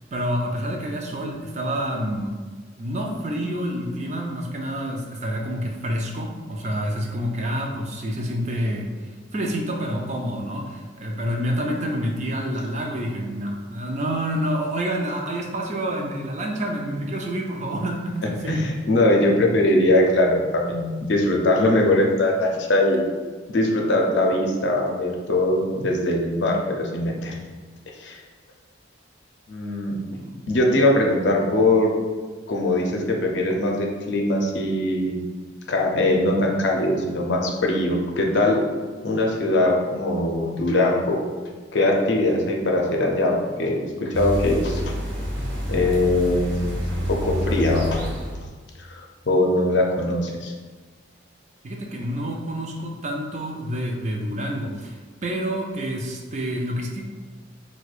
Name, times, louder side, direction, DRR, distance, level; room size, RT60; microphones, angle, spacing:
voice 1, 0.1-2.3 2.8-18.6 30.2-30.3 51.6-57.0, equal, 35° right, 0 dB, 0.4 m, -28 dB
voice 2, 18.4-23.0 23.5-27.3 28.0-28.2 29.5-30.0 30.5-31.9 32.5-35.2 35.7-38.6 39.0-41.2 41.7-43.3 43.6-44.8 45.7-46.8 47.1-48.2 48.8-50.5, left 1 dB, 70° left, 0 dB, 0.5 m, -21 dB
sound 1, 44.1-48.5, equal, 80° right, 0.8 m, -27 dB
4.3 x 2.2 x 2.4 m, 1.4 s
head